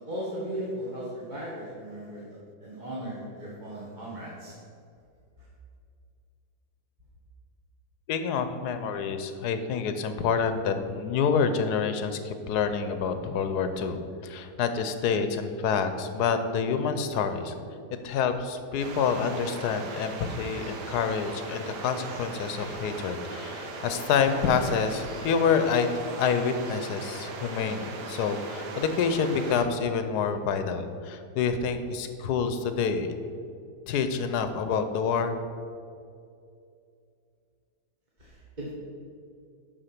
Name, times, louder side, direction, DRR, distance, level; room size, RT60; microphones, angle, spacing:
voice 1, 0.0-2.3 2.6-4.5 38.6-38.7, right 1 dB, 30° right, -7 dB, 1.5 m, -36 dB
voice 2, 8.1-17.5 18.0-33.1 33.9-35.3, left 6 dB, 75° left, 9 dB, 1.3 m, -27 dB
sound 1, 18.8-29.7, right 3 dB, 80° right, 1.6 m, -39 dB
11.5 x 4.4 x 5.9 m, 2.4 s
omnidirectional pair, 1.8 m